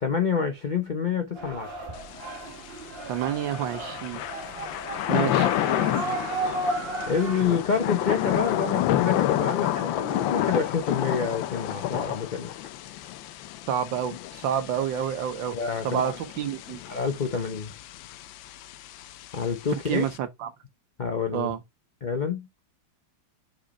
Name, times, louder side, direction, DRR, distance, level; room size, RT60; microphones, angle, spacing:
voice 1, 0.0-1.7 7.1-12.5 15.5-16.1 16.9-17.7 19.3-20.0 21.0-21.5 22.0-22.5, left 6 dB, 65° left, 0.4 m, -28 dB
sound 1, 1.3-7.4, right 2 dB, 35° right, 1.4 m, -33 dB
Thunder / Rain, 2.0-20.2, left 13 dB, 90° left, 1.3 m, -30 dB
voice 2, 3.1-4.2 5.1-5.5 13.7-15.6 15.8-16.8 19.9-20.5 21.3-21.6, right 9 dB, 80° right, 1.7 m, -28 dB
5.0 x 4.9 x 4.2 m
omnidirectional pair, 2.0 m